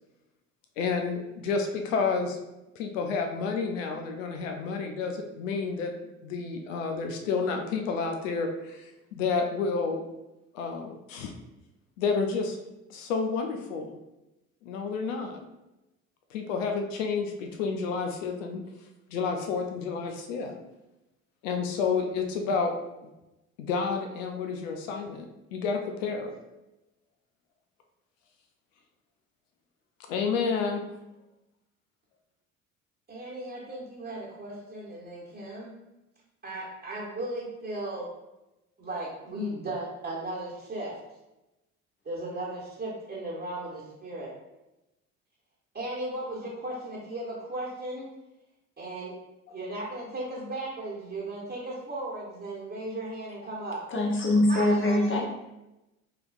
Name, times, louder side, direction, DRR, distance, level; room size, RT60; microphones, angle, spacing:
voice 1, 0.8-2.4 2.8-5.9 6.2-10.0 10.5-11.3 12.0-12.6 12.9-14.0 14.6-15.4 16.3-18.6 19.1-20.5 21.4-22.7 23.0-23.1 23.6-26.3 30.1-30.8, left 5 dB, 70° left, 4 dB, 0.6 m, -30 dB
voice 2, 33.1-35.7 36.4-38.1 38.8-40.9 42.0-44.3 45.7-48.0 48.8-49.1 49.5-53.8 54.5-55.2, right 1 dB, 25° right, -7 dB, 1.2 m, -36 dB
voice 3, 53.9-55.2, left 1 dB, 30° left, 0 dB, 1.0 m, -23 dB
4.8 x 3.0 x 2.5 m, 0.96 s
figure-of-eight pair, 55°, 40 cm